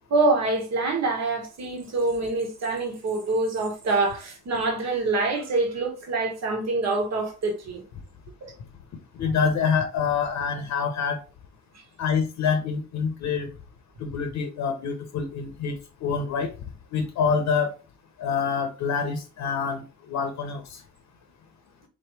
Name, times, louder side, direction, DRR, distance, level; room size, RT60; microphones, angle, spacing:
voice 1, 0.1-7.8 8.4-8.5, right 3 dB, 60° right, 1.5 m, -25 dB
voice 2, 9.1-11.2 12.0-13.5 14.0-16.5 16.9-17.7 18.2-20.8, left 6 dB, 70° left, 0.8 m, -26 dB
3.8 x 3.0 x 3.3 m
cardioid pair, 90°, 30 cm